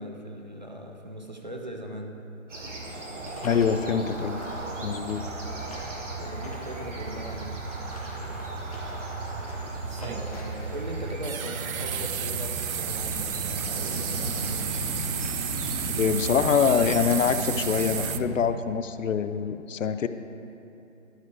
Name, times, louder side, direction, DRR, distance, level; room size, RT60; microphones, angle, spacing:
voice 1, 0.0-2.2 6.2-7.6 10.1-14.7, right 1 dB, 35° right, 1 dB, 0.6 m, -39 dB
sound 1, 2.5-18.2, right 2 dB, 60° right, 1.6 m, -35 dB
sound 2, 3.2-10.5, left 1 dB, 25° left, 1.0 m, -46 dB
voice 2, 3.4-4.4 4.8-5.2 15.9-20.1, left 6 dB, 65° left, 11 dB, 0.5 m, -25 dB
sound 3, 8.7-8.8 9.9-10.3 11.2-18.2, right 9 dB, 80° right, 0.5 m, -33 dB
11.0 x 5.6 x 4.6 m, 2.9 s
hypercardioid pair, 170°, 41 cm